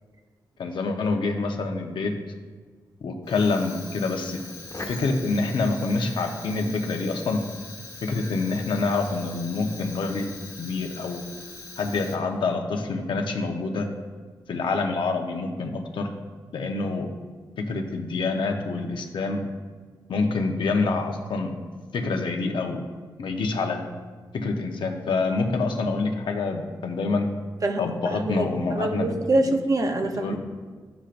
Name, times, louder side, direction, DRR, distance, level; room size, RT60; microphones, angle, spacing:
voice 1, 0.6-2.1 3.0-4.4 4.9-7.4 8.0-10.3 10.6-11.2 11.8-13.9 14.5-16.1 16.5-17.1 17.6-19.5 20.1-21.5 21.9-22.8 23.2-23.8 24.3-27.3 27.8-29.2 29.4-29.5 30.2-30.4, left 3 dB, 85° left, 3 dB, 0.9 m, -26 dB
Fire, 3.2-12.6, left 2 dB, 40° left, 1.4 m, -42 dB
voice 2, 27.6-30.4, right 2 dB, 45° right, 5 dB, 0.8 m, -25 dB
10.0 x 7.1 x 2.6 m, 1.5 s
cardioid pair, 70°, 8 cm